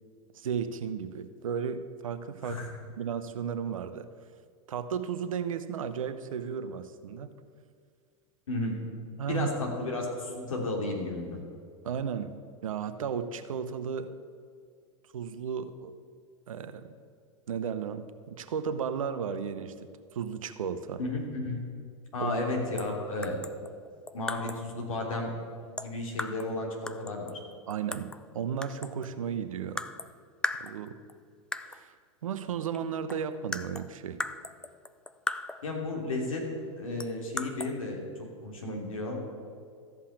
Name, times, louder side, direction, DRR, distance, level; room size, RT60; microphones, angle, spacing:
voice 1, 0.3-2.6 3.0-4.1 4.7-7.3 9.2-9.5 11.8-12.3 12.6-14.1 15.1-15.9 16.5-16.9 17.5-19.7 20.1-21.0 22.2-22.3 27.7-28.1 28.3-29.8 30.6-31.0 31.6-31.9 32.2-34.2, right 7 dB, 85° right, 10 dB, 0.9 m, -34 dB
voice 2, 8.5-8.8 9.3-11.4 21.0-21.7 22.1-23.4 24.1-25.3 25.8-27.3 35.6-36.4 36.8-39.2, left 2 dB, 85° left, 0 dB, 2.9 m, -33 dB
sound 1, 22.8-23.0 23.2-24.7 25.8-26.6 26.9-28.3 28.6-29.2 29.8-30.1 30.4-31.1 31.5-31.9 32.7-32.8 33.1-35.7 37.0-37.7, left 2 dB, 5° left, 0.3 m, -37 dB
14.0 x 5.6 x 8.6 m, 2.2 s
hypercardioid pair, 110°, 17 cm